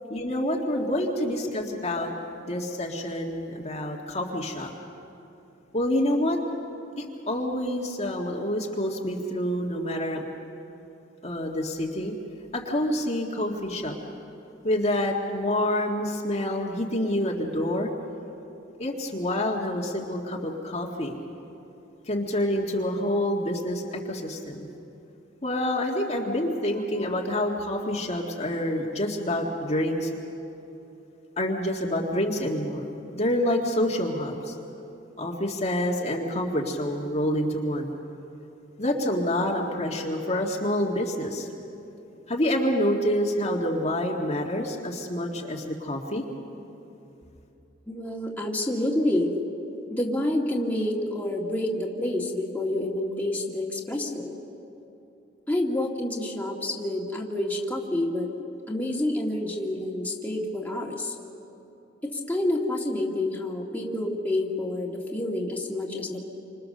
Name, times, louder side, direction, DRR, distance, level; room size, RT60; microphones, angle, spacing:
voice 1, 0.1-2.1 2.5-4.7 5.7-6.4 7.0-10.2 11.2-12.1 12.5-13.9 14.6-17.9 18.8-21.2 22.1-24.7 25.4-30.1 31.4-34.5 35.2-37.9 38.8-41.5 42.3-46.2, left 1 dB, 35° left, -1 dB, 1.8 m, -27 dB
voice 2, 47.9-49.3 49.9-54.4 55.5-58.3 58.7-61.1 62.1-66.3, left 1 dB, 10° left, -2 dB, 2.2 m, -28 dB
28.5 x 26.0 x 6.7 m, 2.9 s
head